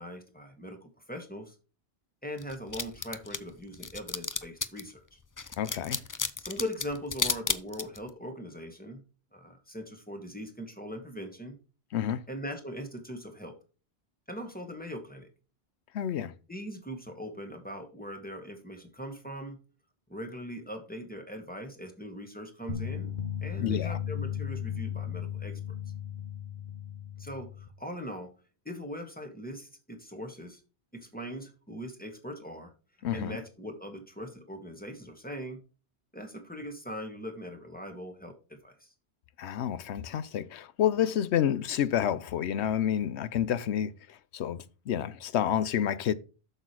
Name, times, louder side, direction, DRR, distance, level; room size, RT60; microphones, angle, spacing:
voice 1, 0.0-1.6 2.2-5.2 6.4-9.0 9.3-11.6 12.3-13.6 14.3-15.3 16.5-19.6 20.1-25.6 27.2-28.3 28.7-30.6 30.9-32.7 33.1-35.6 36.1-38.9, equal, 10° left, 1.9 m, -40 dB
sound 1, 2.4-4.9 5.4-8.1, left 4 dB, 30° left, 0.3 m, -32 dB
voice 2, 5.6-6.0 11.9-12.2 15.9-16.3 23.6-24.0 33.0-33.4 39.4-46.1, left 10 dB, 85° left, 0.9 m, -29 dB
sound 2, 22.7-27.7, left 9 dB, 50° left, 1.2 m, -35 dB
8.0 x 6.8 x 4.7 m
omnidirectional pair, 1.1 m